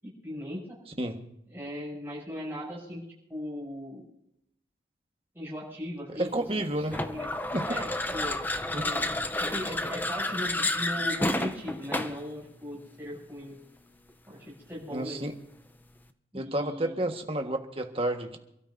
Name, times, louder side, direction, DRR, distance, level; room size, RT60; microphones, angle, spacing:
voice 1, 0.0-0.8 1.5-3.0 3.3-4.1 5.3-7.3 7.7-8.4 8.8-13.5 14.3-15.2 16.3-16.9, equal, 10° right, -4 dB, 7.6 m, -38 dB
voice 2, 6.1-6.9 7.5-7.7 8.7-8.9 14.9-15.3 16.3-18.4, right 1 dB, 30° right, 4 dB, 1.5 m, -30 dB
sound 1, 6.9-12.3, left 2 dB, 10° left, 0.6 m, -30 dB
28.5 x 13.0 x 2.7 m, 0.79 s
head